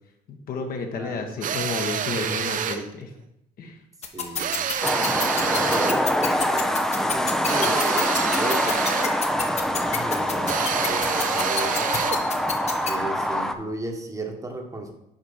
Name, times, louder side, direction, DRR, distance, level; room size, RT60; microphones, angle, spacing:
voice 1, 0.3-3.1 3.6-3.8, left 4 dB, 60° left, 3 dB, 1.3 m, -31 dB
voice 2, 1.0-1.6 4.1-4.6 5.4-7.8 8.2-8.9 9.4-11.9 12.8-14.9, right 2 dB, 20° right, 3 dB, 1.2 m, -35 dB
sound 1, 1.4-2.9 4.4-6.1 7.5-9.2 10.5-12.3, right 8 dB, 50° right, 0.6 m, -28 dB
sound 2, 4.0-12.9, left 6 dB, 40° left, 1.1 m, -27 dB
sound 3, 4.8-13.5, equal, 5° left, 0.5 m, -25 dB
6.5 x 4.8 x 5.6 m, 0.84 s
cardioid pair, 110°, 17 cm